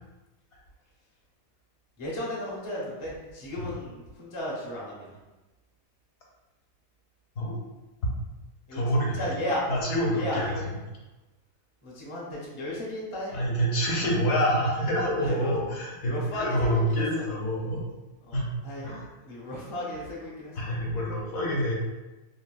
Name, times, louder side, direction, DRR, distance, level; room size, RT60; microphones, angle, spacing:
voice 1, 2.0-5.1 8.7-9.6 10.1-10.6 11.8-13.4 15.2-15.5 16.0-17.0 18.2-18.4 18.6-18.9 19.2-20.8, left 1 dB, 40° left, -5 dB, 0.4 m, -34 dB
voice 2, 8.7-9.2 9.7-10.5 13.3-17.8 18.3-18.5 18.8-19.1 20.6-21.7, equal, 65° left, -3 dB, 1.0 m, -27 dB
3.6 x 2.3 x 2.3 m, 1.1 s
omnidirectional pair, 1.7 m